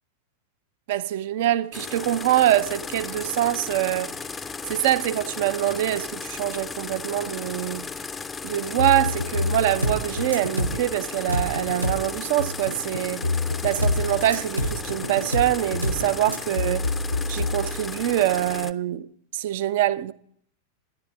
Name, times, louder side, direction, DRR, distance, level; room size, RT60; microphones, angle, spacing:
voice 1, 0.9-4.1 4.7-7.9 8.4-13.2 13.6-16.9 17.3-19.1 19.3-20.1, right 13 dB, 50° right, 0.5 m, -24 dB
sound 1, 1.7-18.7, left 5 dB, 15° left, 0.5 m, -35 dB
sound 2, 8.8-10.9 11.3-12.0 12.4-15.4 15.7-18.1, left 3 dB, 80° left, 0.7 m, -29 dB
sound 3, 9.8-10.1 10.3-10.8 11.3-11.6 11.8-12.1 13.8-14.1 14.3-14.8 15.3-15.6 15.8-16.1 16.3-16.4, right 1 dB, 80° right, 0.8 m, -26 dB
10.5 x 10.5 x 6.2 m
figure-of-eight pair, 90°, 0 cm